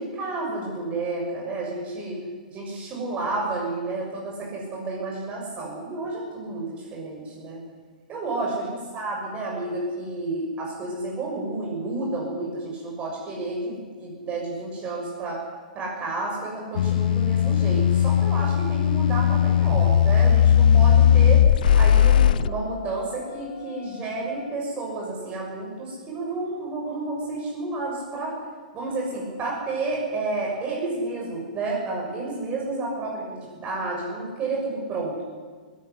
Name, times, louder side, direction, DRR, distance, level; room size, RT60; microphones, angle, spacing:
voice 1, 0.0-2.2 2.5-7.6 8.1-15.4 15.7-21.4 21.7-28.3 28.7-35.2, right 2 dB, 30° right, -2 dB, 6.7 m, -31 dB
sound 1, 16.8-22.5, left 9 dB, 70° left, 0.5 m, -18 dB
19.0 x 15.0 x 9.8 m, 1.5 s
hypercardioid pair, 125°, 5 cm